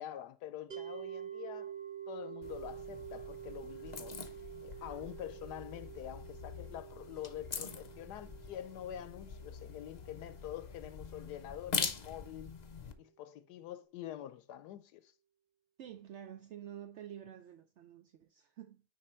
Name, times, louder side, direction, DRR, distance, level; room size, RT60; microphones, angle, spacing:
voice 1, 0.0-1.7 2.1-4.3 4.6-12.5 13.0-15.1, left 11 dB, 80° left, 1.1 m, -46 dB
sound 1, 0.7-11.9, right 9 dB, 30° right, 2.6 m, -48 dB
sound 2, 2.4-12.9, left 5 dB, 55° left, 0.4 m, -43 dB
voice 2, 15.8-18.8, right 10 dB, 70° right, 0.7 m, -49 dB
9.5 x 3.6 x 4.3 m
omnidirectional pair, 1.8 m